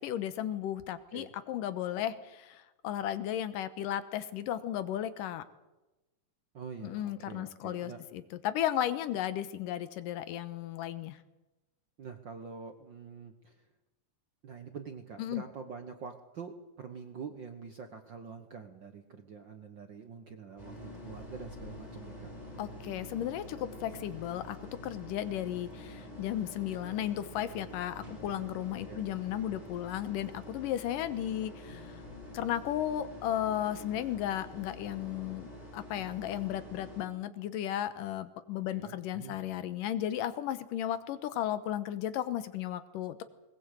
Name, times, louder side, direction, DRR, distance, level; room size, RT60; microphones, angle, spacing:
voice 1, 0.0-2.1 2.5-5.4 6.8-11.2 15.2-15.4 22.6-24.6 24.8-32.0 32.3-35.5 35.7-43.2, left 11 dB, 85° left, 13 dB, 2.7 m, -34 dB
voice 2, 6.5-8.0 12.0-13.7 14.4-22.3 28.9-29.1 38.7-39.4, right 6 dB, 65° right, 6 dB, 1.1 m, -46 dB
sound 1, 20.6-37.0, left 1 dB, 10° left, 5.4 m, -47 dB
20.5 x 20.0 x 8.2 m, 1.1 s
omnidirectional pair, 3.8 m